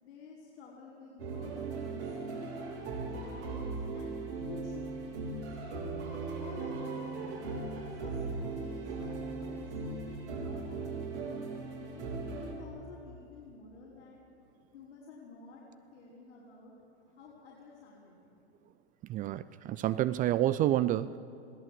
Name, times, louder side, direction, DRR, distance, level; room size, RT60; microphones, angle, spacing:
voice 1, 0.0-2.6 3.0-3.7 3.9-7.1 7.8-12.1 12.5-14.2 14.7-15.6 15.9-16.7 17.0-18.3, left 4 dB, 80° left, -6 dB, 5.1 m, -51 dB
sound 1, 1.2-12.5, right 3 dB, 85° right, 5.2 m, -38 dB
voice 2, 19.1-21.2, right 13 dB, 25° right, 15 dB, 0.4 m, -29 dB
20.5 x 16.5 x 7.7 m, 2.8 s
hypercardioid pair, 110°, 34 cm